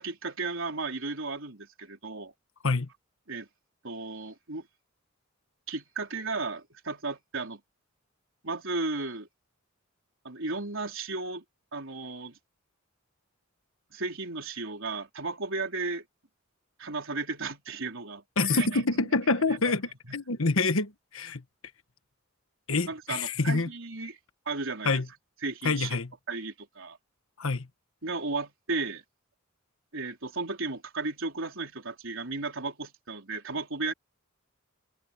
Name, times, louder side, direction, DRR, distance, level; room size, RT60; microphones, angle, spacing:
voice 1, 0.0-2.3 3.3-3.5 3.8-4.7 5.7-7.6 8.4-9.3 10.2-11.4 11.7-12.4 13.9-16.0 16.8-18.8 19.5-19.6 22.9-24.2 24.5-25.0 25.4-26.0 26.3-27.0 28.0-29.0 29.9-33.9, right 3 dB, 65° right, 4.4 m, -34 dB
voice 2, 18.4-21.4 22.7-23.7 24.8-25.1 25.6-26.1 27.4-27.7, left 3 dB, 75° left, 1.4 m, -27 dB
head